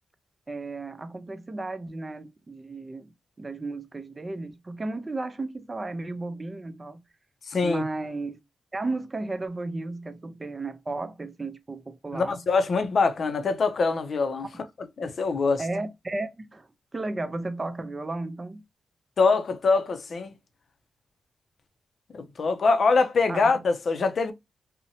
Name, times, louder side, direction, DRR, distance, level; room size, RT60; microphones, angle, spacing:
voice 1, 0.5-3.1 3.4-7.0 7.6-8.4 8.7-12.4 15.6-18.6 23.3-23.5, right 2 dB, 35° right, 0.5 m, -34 dB
voice 2, 7.5-7.8 12.1-14.5 15.0-15.6 19.2-20.3 22.1-24.3, left 4 dB, 65° left, 0.4 m, -23 dB
2.6 x 2.1 x 2.7 m
cardioid pair, 55°, 0 cm